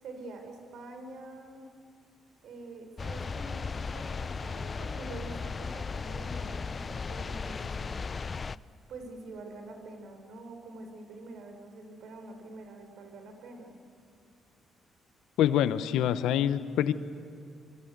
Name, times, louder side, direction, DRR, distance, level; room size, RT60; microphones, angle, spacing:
voice 1, 0.0-1.6 2.4-8.0 8.9-13.7, right 2 dB, 70° right, 5 dB, 5.0 m, -45 dB
sound 1, 3.0-8.6, left 5 dB, 35° left, 0.5 m, -36 dB
voice 2, 15.4-16.9, left 10 dB, 85° left, 13 dB, 1.0 m, -25 dB
27.0 x 24.5 x 8.2 m, 2.3 s
cardioid pair, 90°, 0 cm